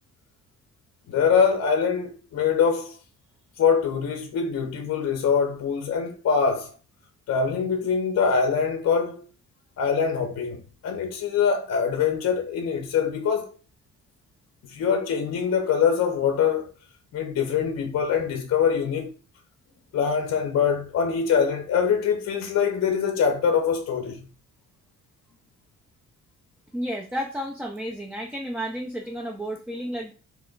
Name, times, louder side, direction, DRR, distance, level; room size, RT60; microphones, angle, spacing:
voice 1, 1.1-2.9 3.6-6.7 7.3-9.2 9.8-13.5 14.7-16.7 17.1-19.1 19.9-24.2, left 6 dB, 50° left, 0.6 m, -23 dB
voice 2, 26.7-30.1, equal, 5° right, 0.4 m, -32 dB
2.9 x 2.1 x 3.8 m
cardioid pair, 90°, 34 cm